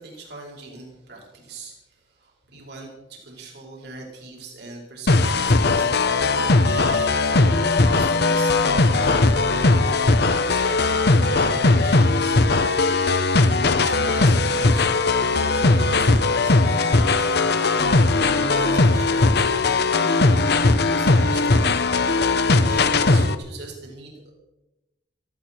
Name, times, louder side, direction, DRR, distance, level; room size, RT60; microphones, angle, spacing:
voice 1, 0.0-6.5 7.2-12.4 13.5-17.6 18.3-21.8 22.5-24.1, right 3 dB, 65° right, -2 dB, 5.5 m, -40 dB
sound 1, 5.1-23.3, left 3 dB, 60° left, 1.1 m, -19 dB
18.0 x 15.5 x 4.6 m, 0.94 s
head